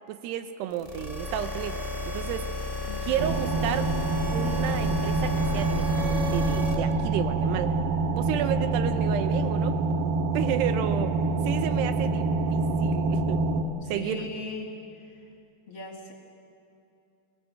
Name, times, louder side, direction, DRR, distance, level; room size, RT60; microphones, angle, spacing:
voice 1, 0.1-2.5 3.0-3.9 4.3-7.8 8.2-9.8 10.3-11.1 11.4-13.4 13.9-14.3, right 10 dB, 90° right, 10 dB, 3.0 m, -32 dB
sound 1, 0.8-6.7, left 3 dB, 10° right, 1.1 m, -33 dB
voice 2, 2.9-3.3 13.8-14.7 15.7-16.1, left 3 dB, 45° left, 0 dB, 2.3 m, -38 dB
sound 2, 3.2-13.6, right 3 dB, 70° right, 2.2 m, -26 dB
23.0 x 18.0 x 7.6 m, 2.6 s
omnidirectional pair, 4.7 m